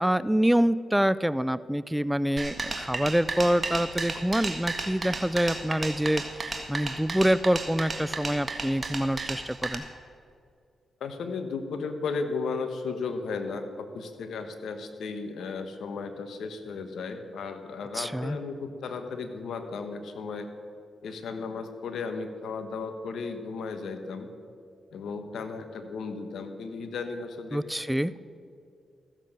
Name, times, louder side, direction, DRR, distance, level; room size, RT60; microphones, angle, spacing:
voice 1, 0.0-9.8 17.9-18.4 27.5-28.1, equal, 5° right, 17 dB, 0.4 m, -26 dB
sound 1, 2.4-9.7, right 3 dB, 40° right, 1.6 m, -33 dB
voice 2, 11.0-20.5 21.0-24.3 24.9-27.6 28.1-28.2, left 4 dB, 75° left, 7 dB, 1.2 m, -35 dB
14.5 x 7.5 x 6.5 m, 2.4 s
supercardioid pair, 50°, 0 cm